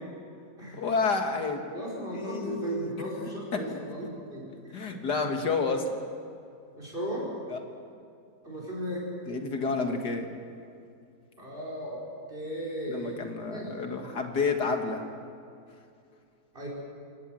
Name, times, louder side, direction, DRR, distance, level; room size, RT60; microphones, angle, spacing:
voice 1, 0.7-1.6 2.2-2.9 3.5-3.8 4.7-5.8 7.5-7.6 9.3-10.3 12.9-15.0, left 4 dB, 75° left, 4 dB, 2.4 m, -29 dB
voice 2, 1.7-5.3 6.7-7.3 8.4-9.1 11.4-12.0 12.3-13.2 13.5-13.8 16.5-16.7, right 1 dB, 30° right, -3 dB, 5.3 m, -36 dB
26.0 x 17.5 x 7.7 m, 2.4 s
omnidirectional pair, 1.8 m